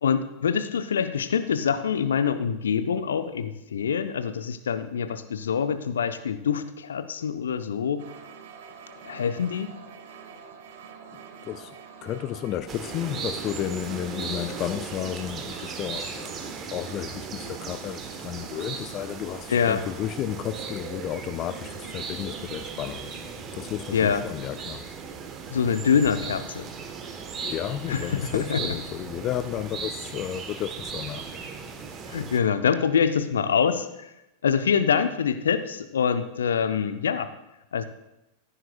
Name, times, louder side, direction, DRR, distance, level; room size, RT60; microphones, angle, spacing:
voice 1, 0.0-8.0 9.0-9.7 19.5-19.8 23.9-24.2 25.5-26.7 27.9-28.6 32.1-34.1 34.4-37.3 37.7-37.8, left 7 dB, 65° left, 0.6 m, -25 dB
sound 1, 8.0-22.5, right 6 dB, 55° right, 1.3 m, -47 dB
voice 2, 11.4-11.8 12.0-23.1 23.5-24.8 27.4-31.3, left 11 dB, 35° left, 0.4 m, -33 dB
sound 2, 12.7-32.4, right 5 dB, 25° right, 1.1 m, -37 dB
15.0 x 9.9 x 2.3 m
figure-of-eight pair, 90°, 0 cm